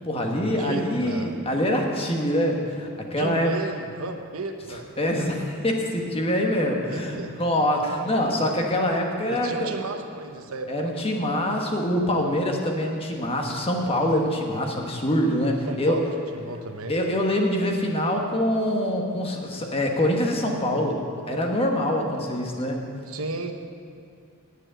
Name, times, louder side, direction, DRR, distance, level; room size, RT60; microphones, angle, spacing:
voice 1, 0.0-3.5 5.0-9.7 10.7-16.0 16.9-22.8, left 1 dB, 25° left, 1 dB, 1.3 m, -25 dB
voice 2, 0.6-1.4 3.2-4.9 6.9-7.6 9.3-10.9 15.6-16.1 16.3-17.0 23.1-23.5, right 3 dB, 75° right, 6 dB, 0.9 m, -34 dB
9.3 x 8.4 x 8.9 m, 2.3 s
head